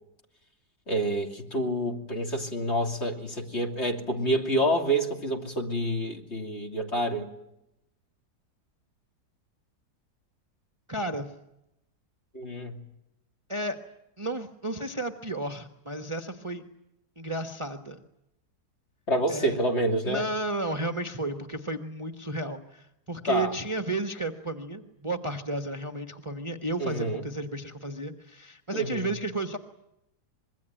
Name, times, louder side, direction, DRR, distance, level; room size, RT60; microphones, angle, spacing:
voice 1, 0.9-7.3 12.3-12.8 19.1-20.2 23.3-23.5 26.8-27.2 28.7-29.1, right 1 dB, 40° left, 2 dB, 3.1 m, -28 dB
voice 2, 10.9-11.3 13.5-13.8 14.2-16.6 17.2-18.0 19.3-19.6 20.0-29.6, right 2 dB, 20° right, 5 dB, 1.2 m, -33 dB
25.5 x 22.0 x 9.1 m, 0.86 s
omnidirectional pair, 1.8 m